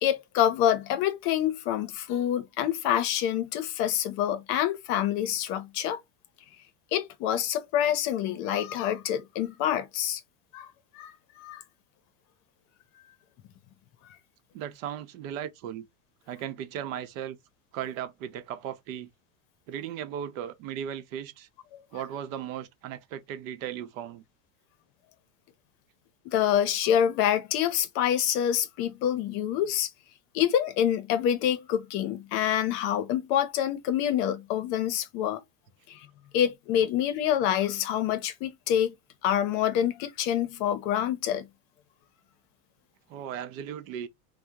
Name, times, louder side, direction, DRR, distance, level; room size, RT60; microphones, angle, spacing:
voice 1, 0.0-6.0 6.9-10.2 10.5-10.7 10.9-11.6 21.7-21.8 26.2-29.9 30.3-35.4 35.9-36.1 36.3-38.9 39.2-41.5, left 10 dB, 50° left, 0.7 m, -26 dB
voice 2, 14.5-15.9 16.3-17.4 17.7-19.1 19.7-21.5 21.9-24.2 43.1-44.1, right 9 dB, 65° right, 0.8 m, -36 dB
2.7 x 2.2 x 3.4 m
supercardioid pair, 140°, 44 cm